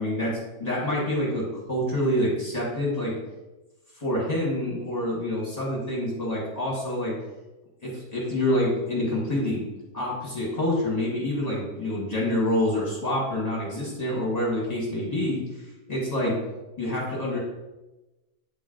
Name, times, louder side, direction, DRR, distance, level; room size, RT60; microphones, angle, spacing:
voice 1, 0.0-3.1 4.0-7.1 7.8-9.6 9.9-15.4 15.9-16.4 16.8-17.4, left 1 dB, 30° left, -5 dB, 1.4 m, -27 dB
8.3 x 3.1 x 3.7 m, 1.1 s
omnidirectional pair, 1.4 m